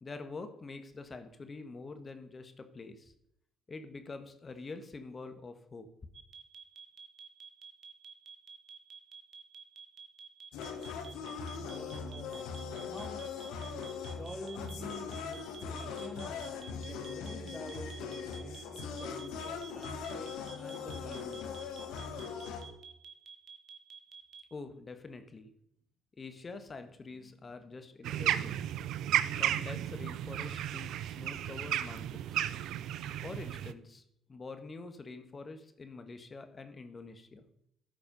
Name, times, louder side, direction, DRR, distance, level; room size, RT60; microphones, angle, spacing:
voice 1, 0.0-3.1 3.7-5.9 24.5-25.5 26.2-28.6 29.4-32.5 33.2-34.0 34.3-37.5, left 3 dB, 35° left, 8 dB, 1.4 m, -46 dB
sound 1, 6.1-24.4, right 6 dB, 55° right, 1.3 m, -50 dB
sound 2, 10.5-22.7, left 6 dB, 80° left, 1.3 m, -40 dB
voice 2, 11.7-12.5 12.9-13.2 14.1-16.5 16.7-21.6, equal, ahead, 2 dB, 2.7 m, -47 dB
sound 3, 28.0-33.7, right 11 dB, 70° right, 0.4 m, -34 dB
12.5 x 4.9 x 5.3 m, 0.76 s
supercardioid pair, 65°, 0 cm